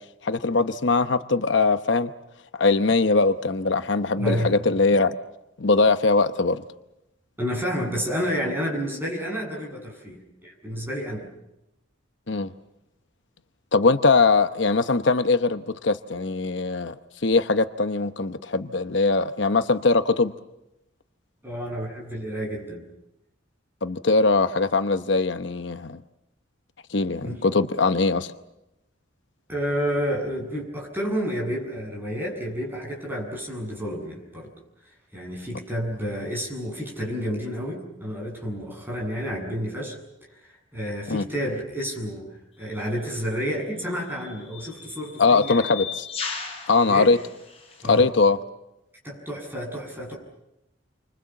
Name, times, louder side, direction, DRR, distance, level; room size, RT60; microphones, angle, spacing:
voice 1, 0.2-2.1 2.6-5.2 5.6-6.6 12.3-12.5 13.7-17.0 17.2-20.3 23.8-26.0 26.9-28.3 41.1-41.2 45.2-46.1 46.7-47.2 47.8-48.4, left 3 dB, 65° left, 10 dB, 0.9 m, -21 dB
voice 2, 4.2-4.5 7.4-11.3 21.4-22.9 27.2-27.5 29.5-34.5 35.1-40.0 40.4-42.3 42.6-45.6 46.8-47.1 47.8-48.1 49.0-50.1, equal, 10° right, 0 dB, 7.7 m, -30 dB
sound 1, 42.6-42.8 43.8-48.0, left 6 dB, 30° left, 7.7 m, -37 dB
30.0 x 25.0 x 7.2 m, 0.90 s
head